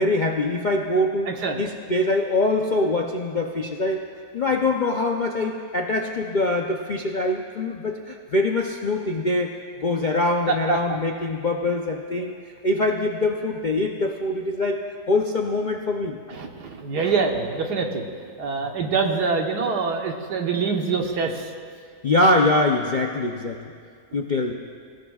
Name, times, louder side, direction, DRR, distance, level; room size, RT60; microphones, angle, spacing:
voice 1, 0.0-1.3 1.6-4.1 4.3-9.5 9.8-12.3 12.6-14.8 15.1-16.2 22.0-23.6 24.1-24.5, left 2 dB, 50° left, 1 dB, 0.5 m, -23 dB
voice 2, 1.3-1.6 10.5-11.0 16.3-18.0 18.4-21.4, right 4 dB, 80° right, 2 dB, 1.7 m, -25 dB
23.0 x 16.0 x 2.4 m, 2.2 s
omnidirectional pair, 1.7 m